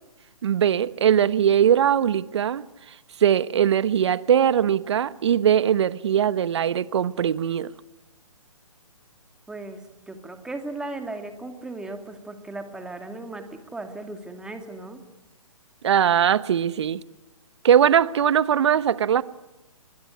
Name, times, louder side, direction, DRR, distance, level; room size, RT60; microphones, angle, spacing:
voice 1, 0.4-2.6 3.2-7.7 15.8-17.0 17.6-19.2, right 9 dB, 50° right, 1.2 m, -20 dB
voice 2, 9.5-15.0, right 2 dB, 5° right, 2.5 m, -36 dB
27.5 x 21.5 x 9.5 m
figure-of-eight pair, 135°, 18 cm